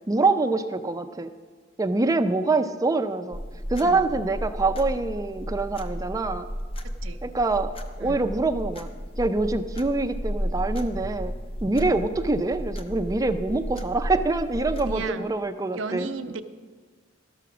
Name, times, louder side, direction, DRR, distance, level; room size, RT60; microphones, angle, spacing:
voice 1, 0.1-1.3 1.8-3.4 3.7-6.5 7.2-7.7 8.0-8.9 9.2-11.3 11.6-16.1, right 3 dB, 20° right, 8 dB, 0.4 m, -25 dB
sound 1, 3.3-15.1, equal, 30° left, 0.7 m, -33 dB
voice 2, 14.8-15.3 15.7-16.4, right 4 dB, 85° right, 9 dB, 0.6 m, -34 dB
12.5 x 6.1 x 5.9 m, 1.5 s
head